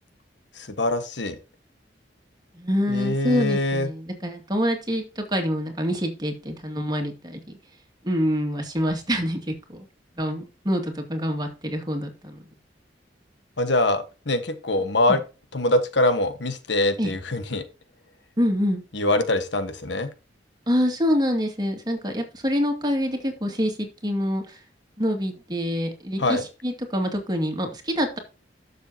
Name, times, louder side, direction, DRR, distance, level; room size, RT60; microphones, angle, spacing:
voice 1, 0.8-1.3 2.9-3.9 13.6-15.2 15.5-17.6 18.9-20.1 26.2-26.4, left 2 dB, 75° left, 9 dB, 1.4 m, -23 dB
voice 2, 2.5-7.4 8.0-9.9 10.2-12.4 14.8-15.2 17.0-17.1 18.4-18.8 20.7-24.6 25.0-28.2, equal, 25° right, 3 dB, 2.4 m, -26 dB
12.5 x 6.8 x 2.9 m, 0.31 s
head